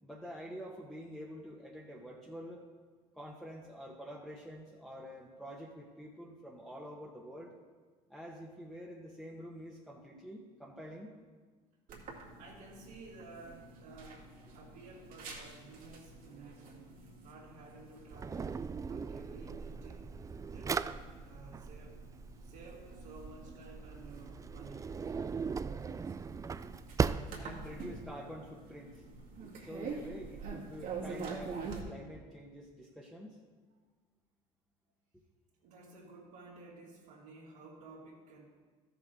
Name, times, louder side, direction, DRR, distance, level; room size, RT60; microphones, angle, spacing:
voice 1, 0.0-2.6 3.1-7.5 8.1-11.1 27.4-29.0 29.6-33.4, equal, ahead, -5 dB, 1.5 m, -47 dB
sound 1, 11.9-31.8, right 4 dB, 55° right, 2.2 m, -48 dB
voice 2, 12.4-20.2 20.4-22.0 22.4-24.9 35.6-38.4, right 3 dB, 75° right, -9 dB, 2.6 m, -53 dB
Drawer open or close, 18.1-28.0, right 5 dB, 20° right, 0.3 m, -39 dB
13.0 x 7.0 x 3.8 m, 1.4 s
supercardioid pair, 80°, 16 cm